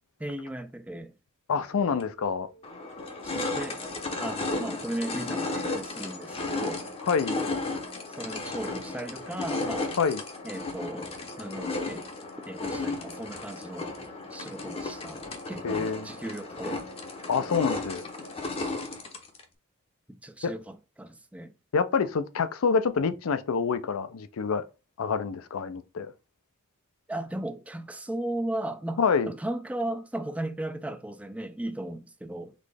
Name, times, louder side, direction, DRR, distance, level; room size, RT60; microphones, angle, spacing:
voice 1, 0.2-1.1 3.2-3.8 4.2-6.8 8.1-9.9 10.4-11.1 11.4-12.0 12.4-16.9 20.2-21.5 27.1-32.5, right 1 dB, 5° right, 0.3 m, -36 dB
voice 2, 1.5-2.5 7.1-7.4 10.0-10.2 15.6-16.1 17.3-18.1 20.4-20.5 21.7-24.6 25.0-26.1 29.0-29.3, left 5 dB, 65° left, 0.5 m, -27 dB
sound 1, 2.0-2.1 2.6-19.4, left 3 dB, 25° left, 0.7 m, -34 dB
4.1 x 3.2 x 3.4 m
head